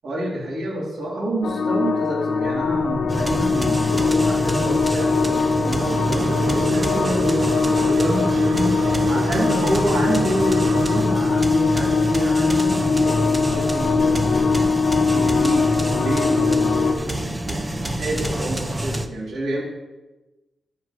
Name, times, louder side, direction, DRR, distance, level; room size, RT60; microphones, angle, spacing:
voice 1, 0.0-7.4 7.9-8.8 9.1-14.5 15.1-19.6, right 1 dB, 65° right, -4 dB, 3.7 m, -27 dB
sound 1, 1.4-16.9, left 4 dB, 65° left, 1.0 m, -21 dB
sound 2, 3.1-19.1, right 1 dB, 15° right, 0.6 m, -27 dB
sound 3, 5.6-11.0, right 5 dB, 85° right, 0.6 m, -30 dB
10.0 x 4.5 x 7.7 m, 1.1 s
wide cardioid pair, 160°, 0 cm